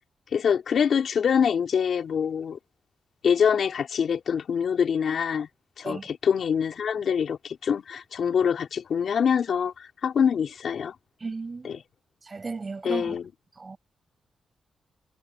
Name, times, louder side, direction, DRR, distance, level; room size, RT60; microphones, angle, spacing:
voice 1, 0.3-2.6 3.2-5.5 5.8-10.9 11.6-11.8 12.8-13.2, left 7 dB, 60° left, 3.2 m, -25 dB
voice 2, 11.2-11.8 12.2-13.2 13.5-13.8, right 4 dB, 30° right, 7.1 m, -35 dB
wide cardioid pair, 130°, 0 cm